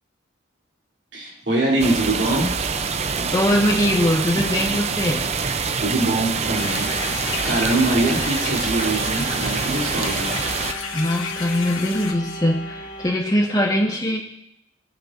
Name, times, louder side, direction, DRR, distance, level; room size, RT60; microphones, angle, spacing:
voice 1, 1.1-2.5 5.5-6.9 7.4-10.3, right 2 dB, 65° right, -3 dB, 3.1 m, -23 dB
sound 1, 1.8-10.7, right 5 dB, 35° right, 0.5 m, -25 dB
voice 2, 3.3-5.2 10.9-14.2, equal, 20° left, -1 dB, 1.3 m, -21 dB
sound 2, 5.5-13.2, left 1 dB, 45° left, 2.6 m, -37 dB
sound 3, 6.5-12.1, left 5 dB, 90° left, 1.7 m, -32 dB
20.0 x 8.8 x 2.6 m, 0.80 s
head